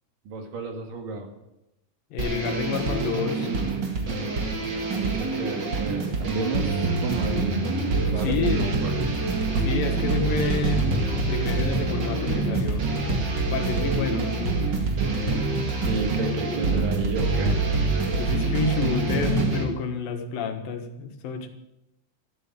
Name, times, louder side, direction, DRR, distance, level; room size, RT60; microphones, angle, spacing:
voice 1, 0.3-1.3 4.9-7.6 8.1-9.2 15.8-17.6, right 3 dB, 75° right, 4 dB, 3.6 m, -31 dB
voice 2, 2.1-3.6 8.0-8.7 9.6-12.8 13.5-14.3 18.2-21.5, left 5 dB, 85° left, 5 dB, 3.3 m, -29 dB
sound 1, 2.2-19.6, right 3 dB, 35° right, 2.3 m, -25 dB
13.5 x 13.0 x 7.4 m, 0.90 s
omnidirectional pair, 3.9 m